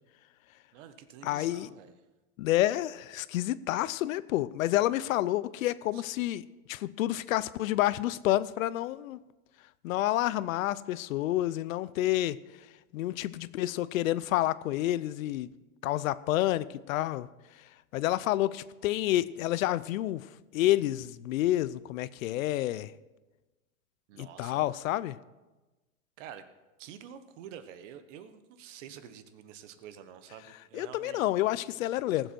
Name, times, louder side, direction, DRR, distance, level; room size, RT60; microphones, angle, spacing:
voice 1, 0.7-1.9 5.9-6.0 24.1-24.7 26.2-26.5 26.8-31.3, right 9 dB, 60° right, 10 dB, 1.4 m, -48 dB
voice 2, 1.2-1.7 2.4-9.2 9.8-12.4 12.9-15.5 15.8-17.3 17.9-22.9 24.2-25.2 30.7-32.3, left 15 dB, 70° left, 17 dB, 0.7 m, -29 dB
19.0 x 7.8 x 4.4 m, 1.1 s
hypercardioid pair, 125°, 42 cm